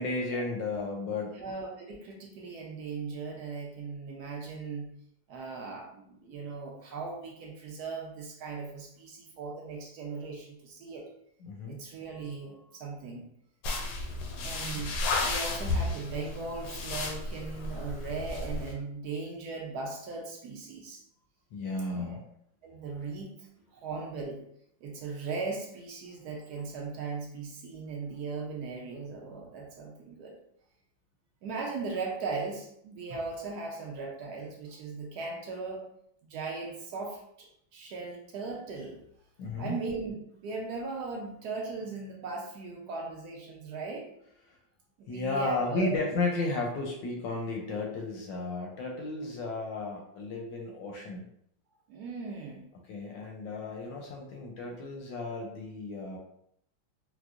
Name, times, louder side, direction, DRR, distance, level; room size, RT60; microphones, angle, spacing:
voice 1, 0.0-1.4 11.4-11.8 14.1-14.8 21.5-22.2 39.4-39.8 45.1-51.3 52.9-56.2, left 3 dB, 75° left, 0 dB, 1.1 m, -34 dB
voice 2, 1.3-4.9 5.3-11.0 11.6-13.2 14.4-21.0 21.9-22.2 22.6-24.4 24.8-30.3 31.4-35.8 36.2-39.0 39.6-44.1 45.0-46.0 51.9-52.7, right 4 dB, 75° right, 0 dB, 0.9 m, -38 dB
sound 1, 13.6-18.7, left 2 dB, 90° left, 1.5 m, -33 dB
4.5 x 2.0 x 2.4 m, 0.71 s
omnidirectional pair, 2.3 m